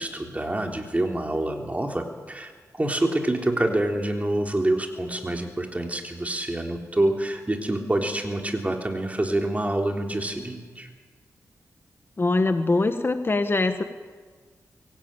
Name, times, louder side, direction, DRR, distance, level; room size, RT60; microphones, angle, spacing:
voice 1, 0.0-10.9, right 1 dB, 20° right, 3 dB, 3.6 m, -26 dB
voice 2, 12.2-13.8, left 2 dB, 35° left, 8 dB, 1.4 m, -23 dB
23.5 x 17.0 x 9.1 m, 1.5 s
cardioid pair, 70°, 7 cm